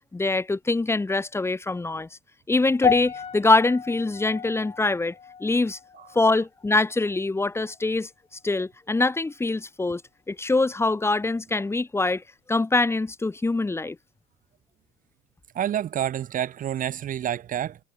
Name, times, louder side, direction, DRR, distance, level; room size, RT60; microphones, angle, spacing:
voice 1, 0.1-2.1 2.5-5.1 5.4-5.8 6.1-8.1 8.4-10.0 10.3-12.2 12.5-14.0, left 3 dB, 15° left, 1.5 m, -24 dB
sound 1, 2.8-7.2 7.5-7.9 8.5-8.6, left 6 dB, 35° left, 2.7 m, -32 dB
voice 2, 15.5-17.8, right 10 dB, 50° right, 1.3 m, -28 dB
cardioid pair, 110°, 17 cm